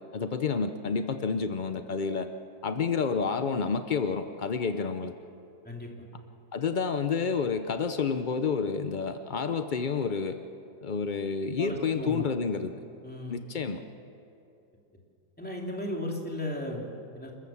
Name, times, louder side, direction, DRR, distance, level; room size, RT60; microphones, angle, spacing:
voice 1, 0.1-2.3 2.6-5.1 6.5-10.4 10.8-12.7 13.3-13.8, left 5 dB, 75° left, 8 dB, 0.4 m, -29 dB
voice 2, 5.6-6.2 11.6-12.2 13.0-13.4 15.4-17.3, left 1 dB, 5° left, -1 dB, 2.9 m, -36 dB
28.0 x 14.0 x 7.2 m, 2.6 s
omnidirectional pair, 1.9 m